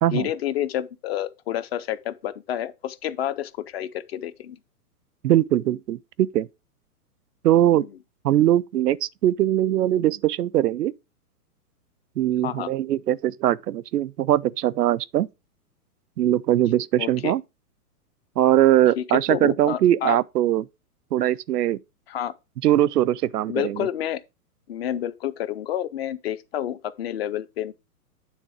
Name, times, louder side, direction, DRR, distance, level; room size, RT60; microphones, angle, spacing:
voice 1, 0.1-4.6 12.4-12.7 17.0-17.3 19.0-20.2 22.1-22.3 23.5-24.2 24.7-27.7, left 11 dB, 45° left, 0.6 m, -29 dB
voice 2, 5.2-6.5 7.4-7.9 8.2-10.9 12.2-15.3 16.2-17.4 18.4-20.6 21.1-21.8 22.6-23.9, right 12 dB, 85° right, 0.6 m, -21 dB
9.3 x 3.5 x 4.8 m
hypercardioid pair, 135°, 46 cm